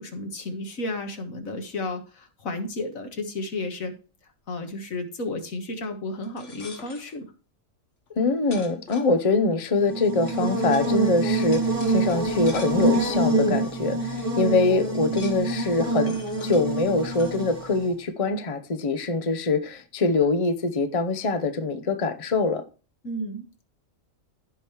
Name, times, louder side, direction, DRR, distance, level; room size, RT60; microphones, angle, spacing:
voice 1, 0.0-4.0 4.5-7.3 23.0-23.7, left 2 dB, 85° left, 1.9 m, -33 dB
sound 1, 6.2-7.1 8.1-8.2 8.5-9.5 10.3-10.4 10.7-10.9 11.5-13.1 13.8-13.9 14.2-14.3 14.6-15.5 16.1-16.6 17.2-17.3, left 3 dB, 60° left, 1.9 m, -44 dB
voice 2, 8.2-22.6, left 3 dB, 30° left, 0.8 m, -24 dB
Buzz, 9.8-17.9, right 3 dB, 25° right, 1.9 m, -26 dB
15.0 x 5.2 x 3.0 m
omnidirectional pair, 1.4 m